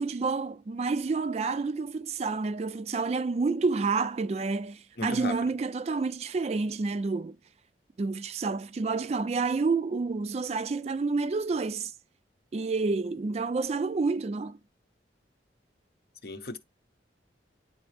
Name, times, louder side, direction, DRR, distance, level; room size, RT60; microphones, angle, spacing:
voice 1, 0.0-7.4 8.0-11.9 12.5-14.6, right 4 dB, 35° right, 0.3 m, -29 dB
voice 2, 5.0-5.5 16.2-16.6, left 2 dB, 55° left, 0.8 m, -35 dB
9.6 x 3.9 x 3.3 m
head